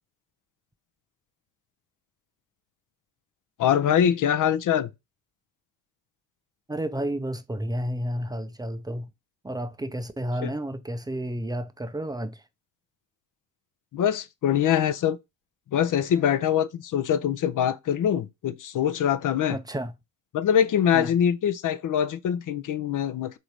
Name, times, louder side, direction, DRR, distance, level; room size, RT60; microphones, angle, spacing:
voice 1, 3.6-4.9 10.4-10.5 13.9-15.2 15.7-19.6 20.3-23.4, left 9 dB, 50° left, 0.6 m, -23 dB
voice 2, 6.7-9.1 9.4-12.4 19.5-19.9 20.9-21.1, equal, 10° right, 0.6 m, -31 dB
3.8 x 2.8 x 4.7 m
hypercardioid pair, 55°, 42 cm